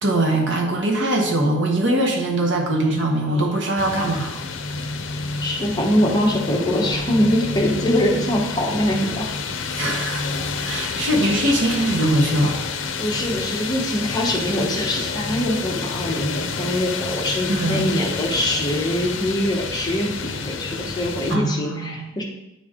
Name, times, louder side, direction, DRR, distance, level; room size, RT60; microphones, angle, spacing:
voice 1, 0.0-4.4 9.7-10.2 10.6-12.6 17.5-17.9 21.3-22.2, right 1 dB, 70° right, 1 dB, 1.2 m, -21 dB
sound 1, 3.8-21.4, left 4 dB, 75° left, 0.6 m, -29 dB
voice 2, 5.4-9.3 13.0-22.2, left 1 dB, 20° left, -1 dB, 0.9 m, -23 dB
8.9 x 3.2 x 3.7 m, 0.92 s
head